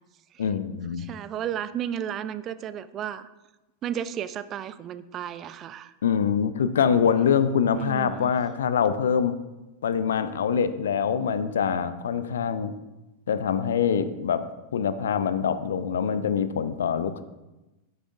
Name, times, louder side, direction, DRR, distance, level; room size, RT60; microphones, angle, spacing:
voice 1, 0.4-1.1 6.0-9.4 9.8-12.7 13.3-14.4 14.7-17.2, left 7 dB, 65° left, 13 dB, 0.6 m, -24 dB
voice 2, 1.0-3.3 3.8-5.9 7.7-8.3, right 9 dB, 30° right, 15 dB, 0.4 m, -33 dB
11.5 x 9.5 x 2.6 m, 1.0 s
figure-of-eight pair, 90°, 0 cm